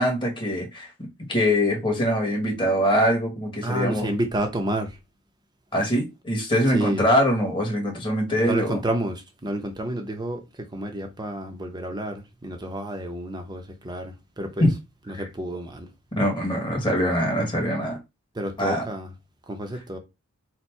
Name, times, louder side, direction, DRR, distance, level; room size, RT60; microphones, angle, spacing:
voice 1, 0.0-4.1 5.7-8.8 14.6-14.7 15.1-15.3 16.2-18.0 18.6-18.8, equal, 20° left, 1.5 m, -23 dB
voice 2, 3.6-5.0 6.7-7.0 8.4-14.7 15.1-15.9 18.3-19.1 19.5-20.0, right 1 dB, 20° right, 0.8 m, -30 dB
4.3 x 2.3 x 4.6 m
head